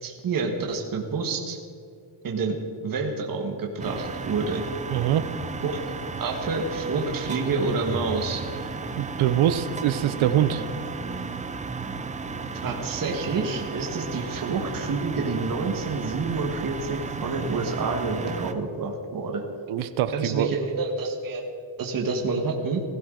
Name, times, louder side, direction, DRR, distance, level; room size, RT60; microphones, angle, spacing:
voice 1, 0.0-1.6 2.2-2.6 2.8-4.6 5.6-5.8 6.2-8.4 12.6-19.4 20.1-21.4 21.8-22.8, right 4 dB, 40° right, 1 dB, 1.5 m, -28 dB
sound 1, 3.8-18.5, right 4 dB, 15° right, 0.5 m, -34 dB
voice 2, 4.9-5.3 9.0-10.6 19.7-20.5, right 11 dB, 70° right, 11 dB, 0.8 m, -23 dB
16.5 x 15.5 x 3.9 m, 2.4 s
cardioid pair, 170°, 50 cm